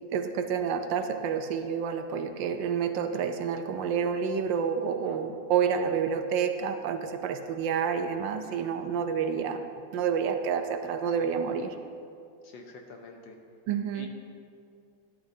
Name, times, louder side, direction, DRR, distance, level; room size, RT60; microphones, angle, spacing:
voice 1, 0.1-9.6 9.9-11.7 13.7-14.1, right 7 dB, 80° right, 7 dB, 1.3 m, -29 dB
voice 2, 12.4-13.4 13.9-14.1, left 3 dB, 80° left, 3 dB, 1.7 m, -47 dB
11.5 x 11.5 x 2.7 m, 2.4 s
omnidirectional pair, 2.0 m